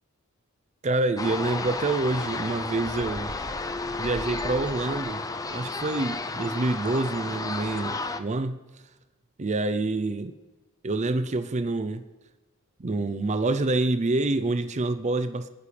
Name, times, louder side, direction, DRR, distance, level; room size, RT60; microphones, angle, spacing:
voice 1, 0.8-3.3 4.0-5.2 5.5-8.6 9.4-10.4 10.8-12.0 12.8-15.5, right 2 dB, 35° right, 11 dB, 0.5 m, -27 dB
sound 1, 1.2-8.2, left 3 dB, 15° left, 0.5 m, -32 dB
Bird, 2.8-5.2, equal, 60° left, 4.4 m, -42 dB
26.0 x 9.9 x 3.4 m, 1.2 s
head